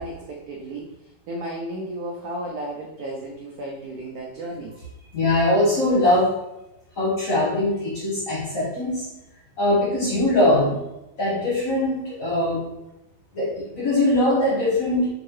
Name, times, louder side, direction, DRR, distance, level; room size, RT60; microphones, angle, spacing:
voice 1, 0.0-4.8, right 1 dB, 80° right, -2 dB, 0.8 m, -34 dB
voice 2, 5.1-6.3 7.0-9.1 9.6-10.8 11.2-12.6 13.3-15.1, left 1 dB, 55° left, -6 dB, 1.0 m, -21 dB
3.6 x 2.7 x 3.1 m, 0.91 s
omnidirectional pair, 2.1 m